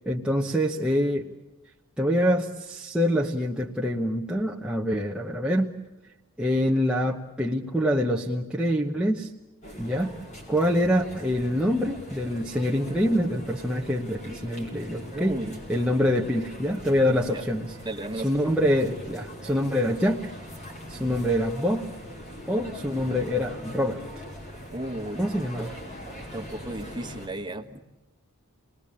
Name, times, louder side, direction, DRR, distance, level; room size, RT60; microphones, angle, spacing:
voice 1, 0.0-1.3 2.0-5.7 6.4-9.3 9.8-10.1 10.5-15.4 15.7-17.8 18.2-20.3 20.9-21.9 22.5-24.0 25.2-25.8, equal, 5° right, -2 dB, 1.0 m, -25 dB
sound 1, 9.6-27.3, equal, 35° left, 5.3 m, -41 dB
voice 2, 15.1-15.6 17.3-17.4 17.8-18.3 24.7-25.2 26.3-27.8, right 1 dB, 20° right, 5 dB, 1.5 m, -34 dB
28.0 x 20.0 x 8.6 m, 1.1 s
head